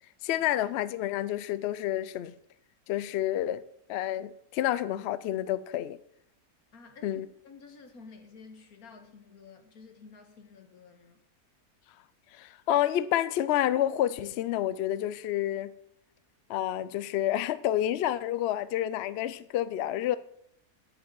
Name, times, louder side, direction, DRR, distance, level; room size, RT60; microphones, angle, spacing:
voice 1, 0.2-2.3 2.9-3.6 3.9-6.0 7.0-7.3 12.3-15.7 16.5-20.2, left 12 dB, 85° left, 0.5 m, -29 dB
voice 2, 6.7-11.2, left 4 dB, 65° left, 1.8 m, -51 dB
9.9 x 5.1 x 7.7 m
omnidirectional pair, 1.7 m